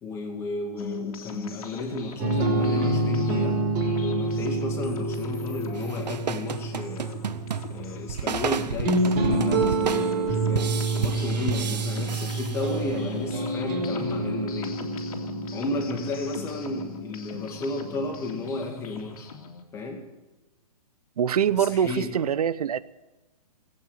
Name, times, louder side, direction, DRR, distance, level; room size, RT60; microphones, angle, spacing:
voice 1, 0.0-3.6 4.0-7.1 7.7-14.8 15.5-19.3 19.7-20.0 21.6-22.1, left 3 dB, 15° left, 2.4 m, -33 dB
sound 1, 0.8-19.6, left 4 dB, 60° left, 2.3 m, -41 dB
sound 2, 2.2-18.3, right 2 dB, 30° right, 3.7 m, -28 dB
sound 3, 5.7-13.2, right 7 dB, 85° right, 0.9 m, -32 dB
voice 2, 21.2-22.8, right 8 dB, 65° right, 0.7 m, -24 dB
16.5 x 8.8 x 9.1 m
hypercardioid pair, 155°, 21 cm